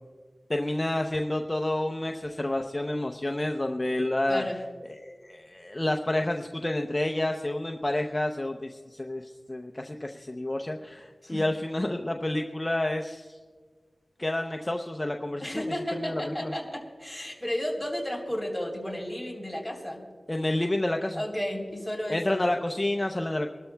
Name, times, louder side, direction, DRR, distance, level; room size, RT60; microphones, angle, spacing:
voice 1, 0.5-4.4 4.9-13.4 14.2-16.5 20.3-21.2 22.1-23.5, left 1 dB, 30° left, 3 dB, 0.7 m, -29 dB
voice 2, 15.4-20.0 21.2-22.4, equal, 5° right, 0 dB, 3.7 m, -33 dB
25.5 x 12.5 x 2.3 m, 1.5 s
wide cardioid pair, 50°, 0 cm